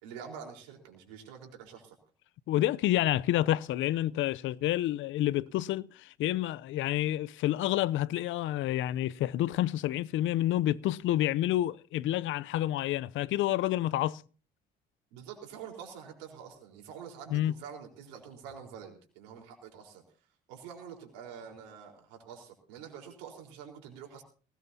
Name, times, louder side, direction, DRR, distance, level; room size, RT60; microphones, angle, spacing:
voice 1, 0.0-2.0 15.1-20.0 20.5-24.2, right 7 dB, 85° right, 4.2 m, -46 dB
voice 2, 2.5-14.2 17.3-17.5, left 14 dB, 70° left, 0.7 m, -29 dB
19.0 x 18.0 x 2.8 m
hypercardioid pair, 60°, 21 cm